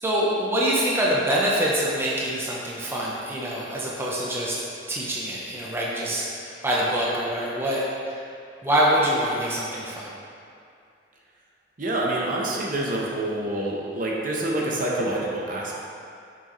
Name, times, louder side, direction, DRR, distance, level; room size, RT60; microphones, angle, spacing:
voice 1, 0.0-8.2 8.6-10.1, right 1 dB, 15° right, -5 dB, 0.7 m, -25 dB
voice 2, 11.8-15.8, right 1 dB, 50° right, -3 dB, 0.8 m, -27 dB
6.8 x 6.2 x 3.1 m, 2.4 s
head